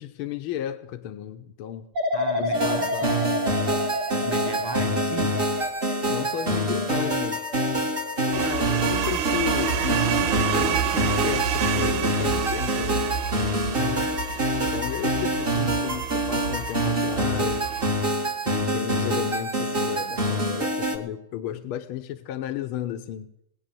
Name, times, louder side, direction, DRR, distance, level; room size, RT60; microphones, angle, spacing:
voice 1, 0.0-1.9 2.4-3.5 6.0-7.5 8.3-13.1 14.6-17.7 18.4-23.3, left 11 dB, 85° left, 9 dB, 1.6 m, -34 dB
sound 1, 1.9-8.9 9.3-9.7, left 1 dB, 55° right, 2.4 m, -31 dB
voice 2, 2.1-3.4 4.1-5.4 13.7-14.2, left 1 dB, 40° left, 6 dB, 0.3 m, -35 dB
sound 2, 2.5-21.0, right 1 dB, 30° right, 1.7 m, -26 dB
sound 3, 8.3-17.9, right 8 dB, 80° right, 1.7 m, -29 dB
20.0 x 9.0 x 7.5 m, 0.82 s
omnidirectional pair, 2.3 m